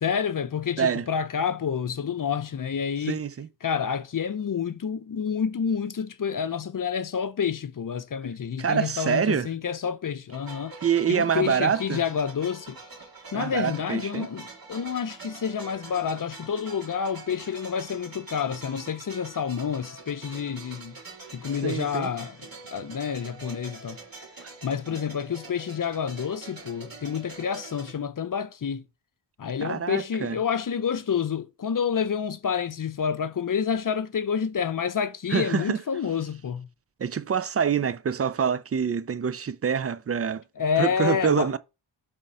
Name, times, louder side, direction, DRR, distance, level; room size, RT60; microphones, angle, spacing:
voice 1, 0.0-3.2 3.6-10.7 11.1-12.8 13.3-21.0 21.3-24.0 24.6-28.8 29.4-36.7 40.6-41.5, left 7 dB, 45° left, 0.6 m, -29 dB
voice 2, 0.8-1.1 3.1-3.5 8.6-9.5 10.8-12.0 13.3-14.3 21.6-22.1 24.4-24.5 29.6-30.4 35.3-35.8 37.0-40.4 40.8-41.6, right 7 dB, 35° right, 0.4 m, -26 dB
sound 1, 10.3-27.9, right 3 dB, 50° right, 2.0 m, -45 dB
5.3 x 3.6 x 5.4 m
cardioid pair, 70°, 46 cm